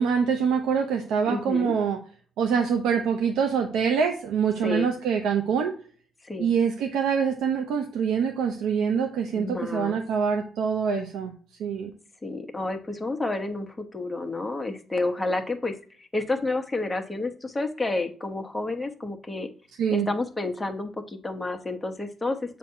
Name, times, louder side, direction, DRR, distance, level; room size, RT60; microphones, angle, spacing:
voice 1, 0.0-2.0 2.4-5.7 6.4-11.3 11.6-11.9 19.8-20.1, right 6 dB, 90° right, 3 dB, 0.8 m, -25 dB
voice 2, 1.3-1.7 4.6-4.9 6.2-6.5 9.3-10.0 12.2-19.5 19.9-22.6, left 2 dB, 15° left, 4 dB, 1.1 m, -30 dB
7.4 x 2.8 x 5.7 m, 0.44 s
cardioid pair, 90°, 0 cm